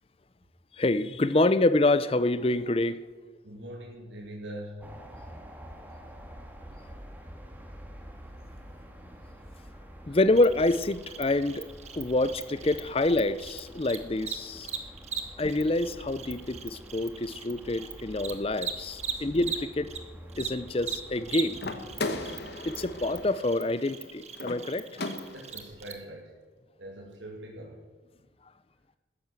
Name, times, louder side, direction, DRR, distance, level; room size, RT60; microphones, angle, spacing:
voice 1, 0.8-3.0 10.1-11.7 11.9-14.7 15.4-19.9 20.4-21.6 22.7-25.0, left 2 dB, 30° left, 15 dB, 0.5 m, -26 dB
voice 2, 3.4-4.9 10.1-10.2 25.3-26.3 26.8-27.8, right 1 dB, 90° right, -1 dB, 2.5 m, -42 dB
sound 1, 4.8-23.3, equal, 10° right, 1.7 m, -48 dB
Cricket, 10.4-20.0 20.3-25.9, right 7 dB, 35° right, 1.3 m, -39 dB
sound 2, 21.6-25.7, left 2 dB, 65° left, 1.2 m, -37 dB
13.5 x 10.5 x 7.8 m, 1.3 s
head